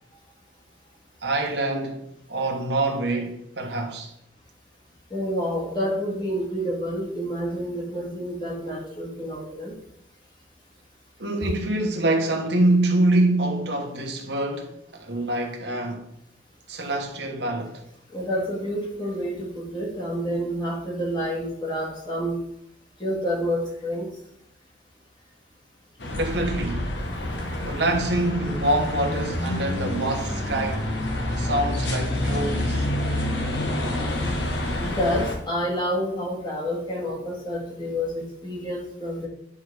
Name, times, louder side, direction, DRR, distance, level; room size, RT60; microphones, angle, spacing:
voice 1, 1.2-4.1 11.2-16.1 16.7-17.8 26.1-26.9 27.6-30.9 31.4-32.9, right 1 dB, 75° right, 1.1 m, -25 dB
voice 2, 5.1-9.8 18.1-22.4 23.0-24.1 26.1-26.2 34.8-39.3, equal, 25° left, 1.9 m, -28 dB
sound 1, 26.0-35.4, left 1 dB, 90° left, 1.2 m, -28 dB
9.5 x 4.6 x 3.4 m
head